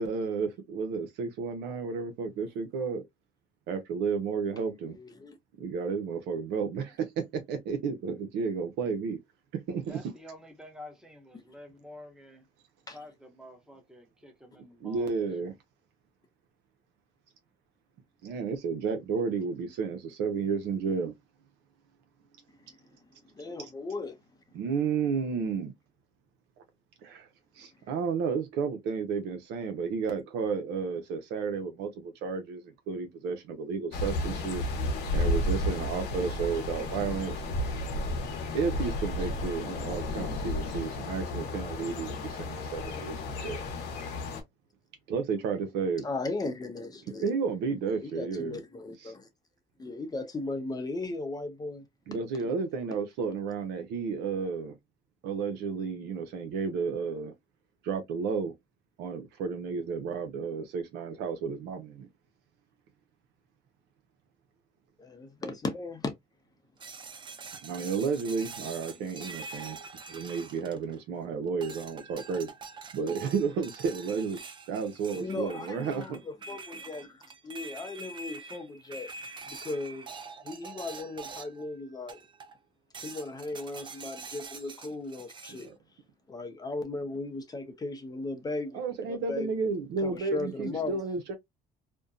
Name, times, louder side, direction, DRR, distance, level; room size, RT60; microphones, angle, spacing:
voice 1, 0.0-3.0 3.7-5.0 5.6-9.2 9.7-10.0 14.8-15.6 18.2-21.1 24.5-25.7 27.0-27.3 27.6-34.6 35.1-37.4 38.5-43.7 45.1-46.0 47.2-48.6 49.0-49.1 52.1-54.8 55.2-57.3 57.8-58.5 59.0-62.1 67.6-69.8 70.1-72.5 72.9-74.4 74.7-76.2 85.5-85.8 88.7-91.3, right 5 dB, 85° right, 0.7 m, -32 dB
voice 2, 4.9-5.4 12.9-13.0 23.3-24.2 46.0-47.3 47.8-49.3 49.8-51.8 52.4-52.6 65.0-66.1 69.3-69.4 75.2-79.1 79.4-80.1 80.4-82.2 83.0-85.7 86.3-89.5 90.0-91.0, left 2 dB, 20° left, 0.6 m, -37 dB
voice 3, 9.9-12.4 12.9-15.1, left 1 dB, 5° right, 0.9 m, -49 dB
sound 1, 33.9-44.4, left 2 dB, 80° left, 0.8 m, -32 dB
sound 2, 66.8-71.2 71.6-81.7 82.1-82.6 82.9-85.7, right 4 dB, 30° right, 0.4 m, -45 dB
2.6 x 2.2 x 2.4 m
cardioid pair, 110°, 17 cm